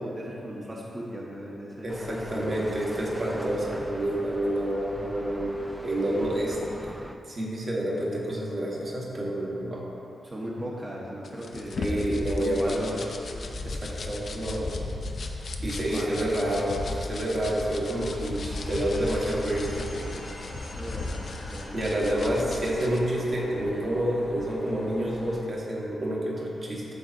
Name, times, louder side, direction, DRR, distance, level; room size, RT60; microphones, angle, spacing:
voice 1, 0.0-2.6 10.2-13.1 14.4-14.8 15.2-15.3 15.8-16.2 20.7-21.8, equal, 30° right, -4 dB, 1.0 m, -38 dB
voice 2, 1.8-6.6 6.8-7.0 7.3-9.8 11.8-12.8 13.6-14.7 15.6-20.3 21.7-26.9, right 1 dB, 50° right, -4 dB, 1.4 m, -28 dB
sound 1, 1.9-7.2, equal, 5° right, 0.4 m, -41 dB
sound 2, 11.2-23.0, left 2 dB, 60° left, 0.5 m, -36 dB
sound 3, 18.4-25.4, left 1 dB, 40° left, 1.0 m, -43 dB
12.0 x 4.0 x 2.6 m, 2.8 s
cardioid pair, 60°, 0 cm